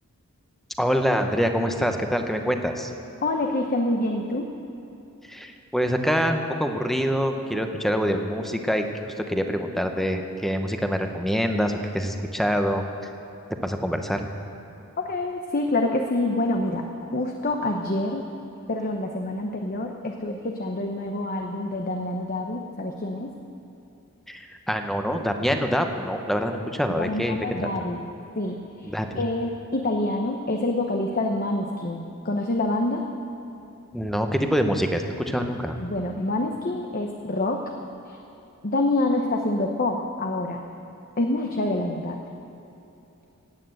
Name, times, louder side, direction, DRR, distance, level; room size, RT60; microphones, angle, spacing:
voice 1, 0.8-2.9 5.3-8.9 9.2-12.8 13.6-14.3 24.3-27.5 28.8-29.2 33.9-35.8, equal, ahead, 5 dB, 0.9 m, -25 dB
voice 2, 3.2-4.5 15.0-18.3 18.7-23.3 27.0-28.0 28.3-33.1 34.7-34.9 35.8-37.7 38.1-38.2 38.6-40.6 41.2-42.2, left 2 dB, 40° left, 3 dB, 0.9 m, -27 dB
16.5 x 9.3 x 7.9 m, 2.9 s
head